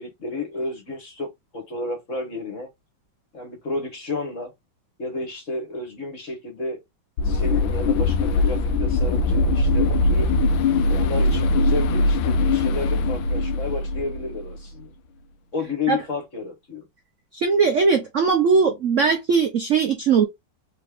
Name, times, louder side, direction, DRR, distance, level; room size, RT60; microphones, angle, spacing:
voice 1, 0.0-2.7 3.3-4.5 5.0-6.8 7.2-10.3 10.8-14.9 15.5-16.8, left 3 dB, 40° left, 1.6 m, -31 dB
sound 1, 7.2-14.6, left 2 dB, 80° left, 1.3 m, -21 dB
voice 2, 17.3-20.2, right 5 dB, 65° right, 0.7 m, -19 dB
3.7 x 3.4 x 3.5 m
omnidirectional pair, 2.2 m